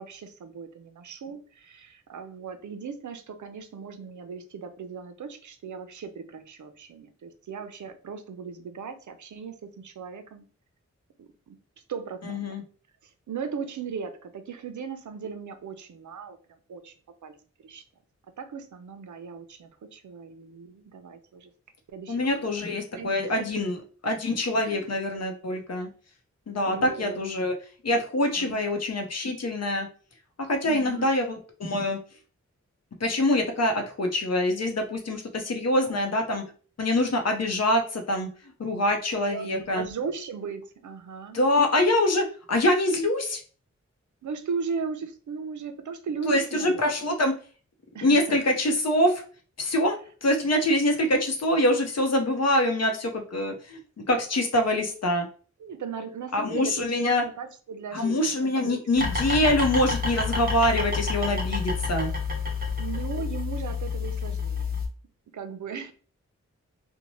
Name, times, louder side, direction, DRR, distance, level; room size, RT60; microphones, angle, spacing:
voice 1, 0.0-10.4 11.2-11.6 11.9-12.6 13.0-16.4 16.7-16.9 17.2-17.8 18.4-21.5 21.9-22.3 22.6-23.1 23.4-23.5 24.6-24.9 26.7-27.2 28.4-28.6 30.6-31.1 35.8-36.0 39.3-41.4 44.2-46.9 47.9-48.4 55.6-58.8 62.8-64.7 65.3-65.9, right 6 dB, 80° right, 8 dB, 0.5 m, -37 dB
voice 2, 12.3-12.6 22.1-23.7 24.0-25.9 26.5-27.5 27.8-29.9 30.5-32.0 33.0-36.4 36.8-38.3 38.6-39.8 41.3-43.4 46.3-47.3 48.0-49.2 49.6-55.3 56.3-57.2 57.9-62.1, left 1 dB, 60° left, 4 dB, 0.7 m, -25 dB
sound 1, 59.0-64.9, left 4 dB, 30° right, 1.0 m, -29 dB
2.7 x 2.1 x 2.9 m, 0.40 s
wide cardioid pair, 65°, 29 cm